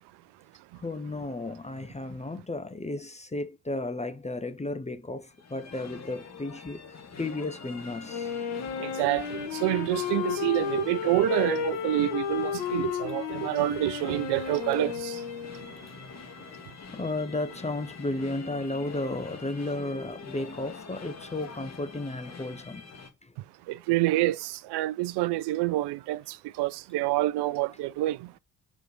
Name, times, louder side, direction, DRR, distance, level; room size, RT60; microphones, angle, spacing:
voice 1, 0.8-6.8 7.2-8.3 16.9-22.8, left 2 dB, 15° left, 0.9 m, -33 dB
sound 1, 5.3-23.1, left 4 dB, 35° left, 2.0 m, -45 dB
Wind instrument woodwind instrument, 8.1-15.8, left 7 dB, 70° left, 1.3 m, -33 dB
voice 2, 8.8-15.2 23.7-28.4, right 17 dB, 55° right, 0.6 m, -27 dB
4.6 x 4.6 x 5.2 m
figure-of-eight pair, 45°, 48 cm